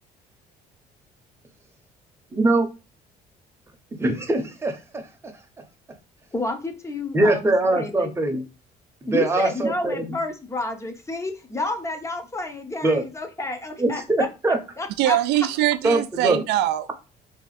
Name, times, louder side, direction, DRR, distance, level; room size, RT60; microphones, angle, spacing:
voice 1, 2.3-2.7 4.0-5.1 7.1-8.4 9.1-10.0 12.8-13.0 13.8-14.6 15.8-16.4, right 2 dB, 15° right, 0.8 m, -22 dB
voice 2, 6.3-8.1 9.1-15.2, left 2 dB, 15° left, 0.7 m, -30 dB
voice 3, 15.0-16.9, right 13 dB, 85° right, 0.4 m, -22 dB
2.8 x 2.4 x 4.0 m
cardioid pair, 110°, 17 cm